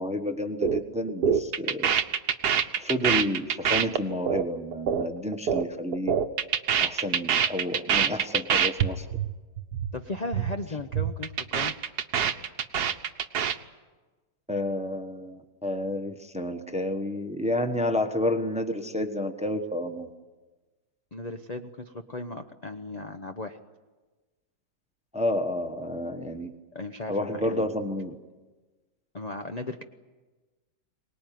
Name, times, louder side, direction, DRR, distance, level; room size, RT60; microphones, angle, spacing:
voice 1, 0.0-1.9 2.8-6.1 6.8-9.1 14.5-20.1 25.1-26.5 27.1-28.2, left 1 dB, 5° right, 7 dB, 0.9 m, -30 dB
sound 1, 0.6-0.8 1.1-5.7 5.9-8.9 9.1-9.3 9.6-9.9 10.2-10.5 10.8-13.6, right 8 dB, 60° right, 1.4 m, -25 dB
voice 2, 9.9-11.7 21.1-23.6 26.7-27.7 29.1-29.8, left 2 dB, 45° left, 6 dB, 0.5 m, -36 dB
24.0 x 19.5 x 9.3 m, 1.3 s
omnidirectional pair, 2.1 m